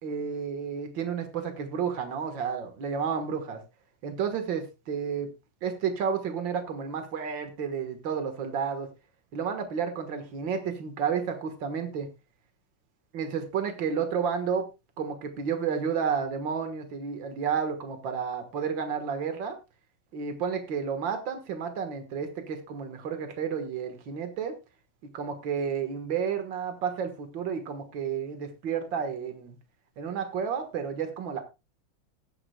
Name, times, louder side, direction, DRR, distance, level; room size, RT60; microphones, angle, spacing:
voice 1, 0.0-3.6 4.0-5.3 5.6-8.9 9.3-12.1 13.1-14.6 15.0-19.6 20.1-24.5 25.1-29.6 30.0-31.4, right 6 dB, 75° right, 7 dB, 2.2 m, -31 dB
19.0 x 9.8 x 2.2 m, 0.25 s
omnidirectional pair, 2.1 m